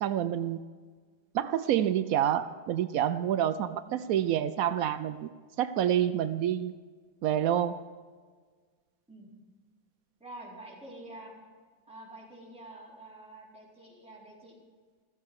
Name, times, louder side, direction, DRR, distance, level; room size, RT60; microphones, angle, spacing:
voice 1, 0.0-0.6 1.3-5.3 5.6-6.7 7.2-7.8, right 10 dB, 90° right, 12 dB, 0.7 m, -28 dB
voice 2, 10.2-11.3 11.9-14.5, right 1 dB, 5° right, -5 dB, 4.4 m, -47 dB
15.0 x 14.5 x 4.8 m, 1.5 s
omnidirectional pair, 2.1 m